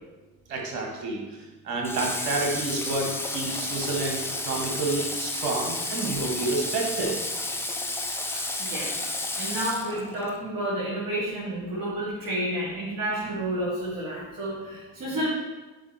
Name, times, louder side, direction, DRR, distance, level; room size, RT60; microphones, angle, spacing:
voice 1, 0.5-1.2 1.6-7.2 8.3-8.4, right 3 dB, 65° right, 0 dB, 1.4 m, -29 dB
Water / Water tap faucet, 1.8-10.4, left 2 dB, 5° left, 0.7 m, -32 dB
voice 2, 8.3-9.0 9.3-15.3, right 1 dB, 45° right, -7 dB, 2.4 m, -30 dB
11.0 x 4.3 x 3.1 m, 1.2 s
figure-of-eight pair, 50°, 45 cm